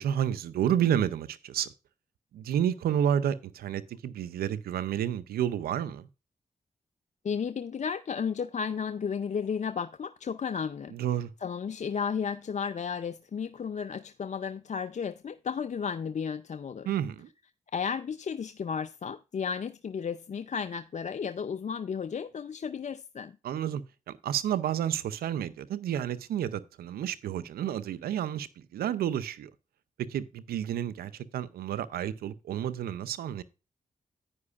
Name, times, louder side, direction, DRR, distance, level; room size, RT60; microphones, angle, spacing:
voice 1, 0.0-1.7 2.3-6.1 10.9-11.3 16.9-17.3 23.4-23.8 24.1-29.5 30.1-33.4, right 10 dB, 90° right, 0.6 m, -30 dB
voice 2, 7.2-10.9 11.4-16.9 17.7-23.4, left 6 dB, 50° left, 0.5 m, -33 dB
9.8 x 9.6 x 2.4 m
supercardioid pair, 40°, 15 cm